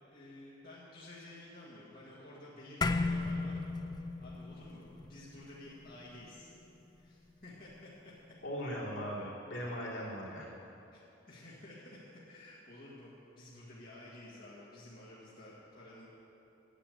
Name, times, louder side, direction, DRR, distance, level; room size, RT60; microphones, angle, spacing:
voice 1, 0.1-3.6 3.9-6.6 7.0-8.1 10.9-11.0 11.3-16.1, left 1 dB, 45° left, -7 dB, 1.8 m, -52 dB
sound 1, 2.8-7.4, left 3 dB, 20° left, 0.3 m, -36 dB
voice 2, 8.4-10.5, equal, 75° left, -6 dB, 3.0 m, -39 dB
10.0 x 8.3 x 8.3 m, 2.9 s
head